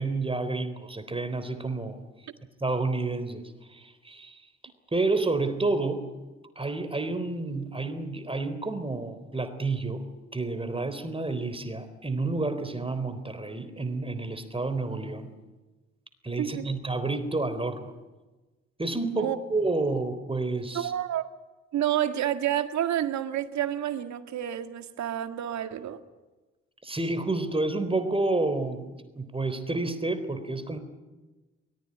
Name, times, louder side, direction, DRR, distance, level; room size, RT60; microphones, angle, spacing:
voice 1, 0.0-2.0 2.6-3.4 3.7-4.4 4.9-6.0 6.6-10.1 10.3-15.3 16.2-17.9 18.8-20.9 26.8-30.8, right 3 dB, 15° right, 10 dB, 3.9 m, -29 dB
voice 2, 20.7-21.3 21.7-26.0, right 11 dB, 60° right, 9 dB, 1.9 m, -29 dB
23.0 x 20.0 x 10.0 m, 1.2 s
hypercardioid pair, 50°, 32 cm